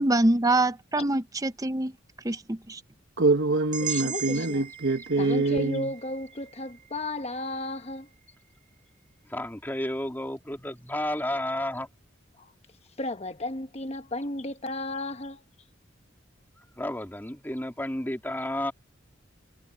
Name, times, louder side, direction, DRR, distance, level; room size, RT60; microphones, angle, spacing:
voice 1, 0.0-1.9 2.2-2.8, right 2 dB, 20° right, 0.8 m, -25 dB
voice 2, 3.2-5.9, right 2 dB, 65° right, 1.1 m, -25 dB
sound 1, 3.7-7.8, right 9 dB, 45° right, 3.1 m, -38 dB
voice 3, 3.8-4.6 5.2-8.1 12.4-12.5 13.0-15.4, left 1 dB, 35° left, 1.1 m, -34 dB
voice 4, 9.3-11.9 16.8-18.7, left 1 dB, 10° left, 2.4 m, -31 dB
head